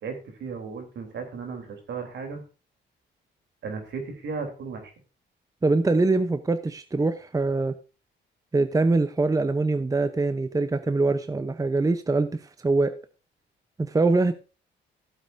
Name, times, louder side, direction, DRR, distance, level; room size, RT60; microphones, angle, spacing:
voice 1, 0.0-2.4 3.6-4.9, right 5 dB, 65° right, 3.5 m, -35 dB
voice 2, 5.6-7.7 8.5-12.3 12.6-12.9 13.8-14.3, right 3 dB, 15° right, 0.8 m, -23 dB
15.0 x 8.3 x 2.7 m
cardioid pair, 90°, 20 cm